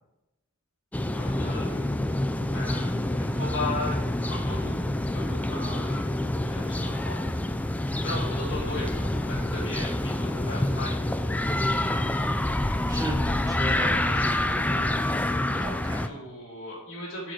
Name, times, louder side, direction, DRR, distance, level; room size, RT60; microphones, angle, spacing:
sound 1, 0.9-16.1, left 1 dB, 5° left, 0.3 m, -27 dB
voice 1, 1.1-2.0 2.5-4.8 5.1-6.1 6.4-7.2 8.0-11.0 15.9-17.3, left 2 dB, 55° left, -9 dB, 2.3 m, -36 dB
voice 2, 11.8-12.2 12.9-15.1 15.5-16.1, right 1 dB, 15° right, 4 dB, 0.9 m, -36 dB
8.7 x 4.8 x 4.6 m, 0.94 s
head